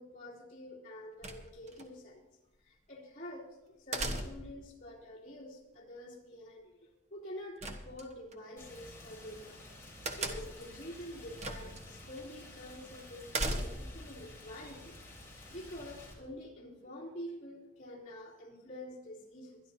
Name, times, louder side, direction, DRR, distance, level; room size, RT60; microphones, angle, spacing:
voice 1, 0.0-2.2 2.6-9.6 10.1-19.6, left 1 dB, 40° left, -5 dB, 3.1 m, -47 dB
sound 1, 1.2-1.9 3.9-4.6 7.6-8.4 10.1-10.7 11.4-11.8 12.2-12.3 13.3-14.0, right 2 dB, 35° right, 1.2 m, -36 dB
Rain, 8.6-16.1, left 1 dB, 15° left, 3.6 m, -51 dB
23.5 x 11.0 x 2.8 m, 0.98 s
head